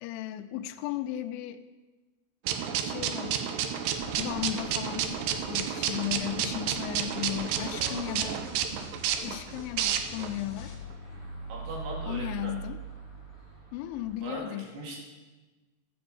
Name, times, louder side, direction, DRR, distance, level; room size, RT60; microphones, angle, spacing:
voice 1, 0.0-1.6 2.8-3.5 4.2-8.4 9.2-10.7 12.0-12.8 13.7-14.7, left 13 dB, 85° left, 7 dB, 3.1 m, -35 dB
sound 1, 2.5-10.3, right 9 dB, 85° right, 2.4 m, -31 dB
sound 2, 3.9-14.2, right 1 dB, 20° right, 3.3 m, -44 dB
sound 3, 5.3-10.7, left 2 dB, 35° left, 1.9 m, -50 dB
voice 2, 7.8-8.2 11.5-12.5 14.2-15.0, right 2 dB, 60° right, -2 dB, 4.2 m, -40 dB
14.5 x 5.4 x 7.8 m, 1.3 s
omnidirectional pair, 5.7 m